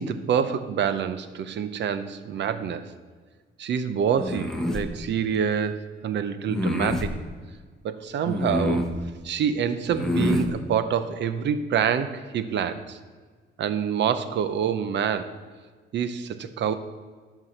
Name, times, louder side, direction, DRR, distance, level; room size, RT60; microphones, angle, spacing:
voice 1, 0.0-2.9 3.6-7.2 7.8-9.0 9.2-13.0 13.6-15.3 15.9-16.7, right 7 dB, 65° right, 11 dB, 0.8 m, -26 dB
sound 1, 4.2-4.9 6.5-7.1 8.2-9.0 9.9-10.5, left 1 dB, 5° left, 1.3 m, -26 dB
11.5 x 4.7 x 6.7 m, 1.5 s
cardioid pair, 90°, 20 cm